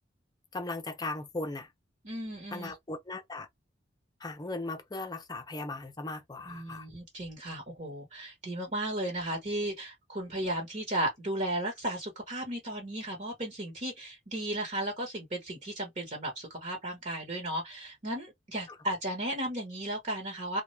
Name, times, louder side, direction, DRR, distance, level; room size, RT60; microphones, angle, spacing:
voice 1, 0.5-1.7 2.5-3.5 4.2-6.9, left 2 dB, 20° left, 0.6 m, -37 dB
voice 2, 2.0-2.7 6.4-20.6, right 1 dB, 40° right, 1.1 m, -35 dB
3.4 x 2.3 x 3.1 m
head